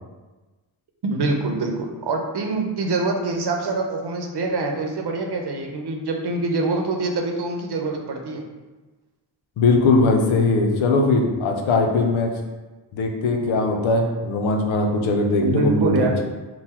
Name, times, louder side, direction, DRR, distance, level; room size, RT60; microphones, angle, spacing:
voice 1, 1.0-8.4 15.4-16.1, right 3 dB, 60° right, 2 dB, 0.8 m, -25 dB
voice 2, 9.6-12.3 12.9-16.2, left 3 dB, 85° left, 2 dB, 0.7 m, -20 dB
3.8 x 2.2 x 4.4 m, 1.2 s
cardioid pair, 55°, 46 cm